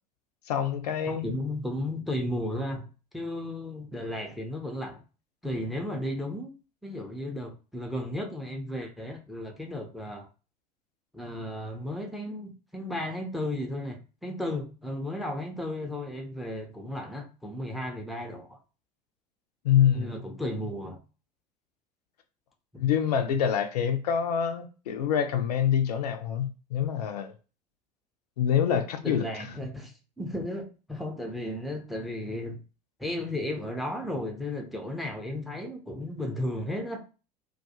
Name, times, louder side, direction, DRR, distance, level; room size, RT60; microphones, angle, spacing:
voice 1, 0.5-1.3 19.6-20.2 22.8-27.3 28.4-29.5, left 9 dB, 70° left, 0.4 m, -26 dB
voice 2, 1.1-2.9 3.1-5.0 5.4-6.6 6.8-10.3 11.1-18.6 19.9-21.0 29.0-32.6 33.0-37.0, left 1 dB, ahead, 0.5 m, -34 dB
2.3 x 2.2 x 2.7 m
figure-of-eight pair, 70°, 21 cm